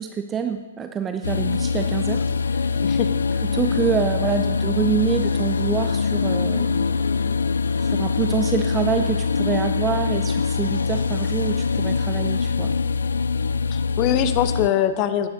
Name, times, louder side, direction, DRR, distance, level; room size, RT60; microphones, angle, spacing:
voice 1, 0.0-2.8 3.4-7.0 7.8-12.7, right 7 dB, 15° right, 7 dB, 0.5 m, -26 dB
sound 1, 1.2-14.7, left 5 dB, 65° left, 0.3 m, -23 dB
voice 2, 13.7-15.3, left 10 dB, 30° left, 11 dB, 0.7 m, -22 dB
18.5 x 9.6 x 2.8 m, 1.2 s
figure-of-eight pair, 115°, 0 cm